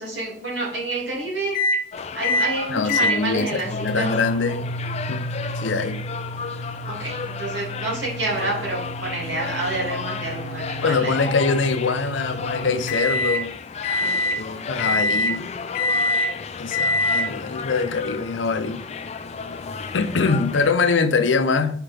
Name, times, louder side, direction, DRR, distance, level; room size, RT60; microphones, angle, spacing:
voice 1, 0.0-1.6 2.1-4.1 6.8-11.2, right 2 dB, 80° right, 2.5 m, -28 dB
sound 1, 1.5-1.8 2.2-2.5 2.9-13.4 13.8-14.4 14.8-15.3 15.7-16.3 16.7-17.3, left 1 dB, 50° left, 0.8 m, -27 dB
sound 2, 1.9-20.7, left 5 dB, 35° left, 0.4 m, -34 dB
voice 2, 2.7-4.7 5.1-5.3 5.6-6.0 10.8-13.5 14.4-15.5 16.6-18.8 19.9-21.8, left 4 dB, 90° left, 0.6 m, -23 dB
5.9 x 4.9 x 3.4 m
head